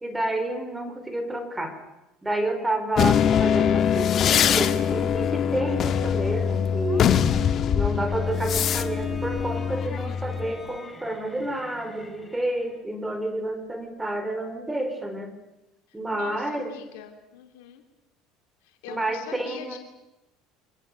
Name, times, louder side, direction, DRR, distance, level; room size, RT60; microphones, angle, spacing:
voice 1, 0.0-1.7 2.2-7.2 7.7-15.3 15.9-16.7 18.9-19.8, right 1 dB, 10° right, 8 dB, 4.3 m, -29 dB
sound 1, 3.0-10.5, left 8 dB, 45° left, 1.5 m, -23 dB
Bowed string instrument, 8.1-12.9, left 2 dB, 10° left, 4.2 m, -45 dB
voice 2, 16.1-17.8 18.6-19.8, left 10 dB, 85° left, 4 dB, 2.8 m, -42 dB
25.0 x 20.5 x 8.3 m, 0.98 s
supercardioid pair, 95°, 0 cm